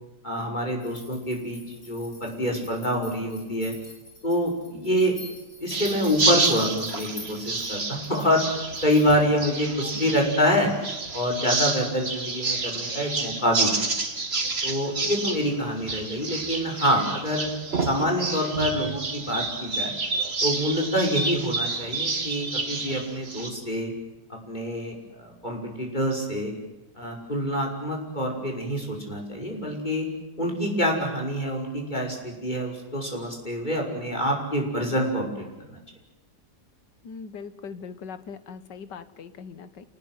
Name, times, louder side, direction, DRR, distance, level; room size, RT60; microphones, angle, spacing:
voice 1, 0.2-1.6 1.9-3.7 4.2-5.1 5.6-8.4 8.8-10.7 11.1-13.8 14.6-17.5 17.8-19.9 20.4-23.9 24.3-26.5 27.0-30.1 30.4-35.8, equal, 25° left, 1 dB, 6.0 m, -26 dB
sound 1, 0.8-9.3, left 2 dB, 65° left, 8.4 m, -46 dB
sound 2, 5.7-23.5, right 3 dB, 35° right, 2.5 m, -29 dB
voice 2, 37.0-39.9, left 5 dB, 80° left, 13 dB, 2.0 m, -40 dB
28.5 x 19.5 x 9.4 m, 1.0 s
omnidirectional pair, 1.9 m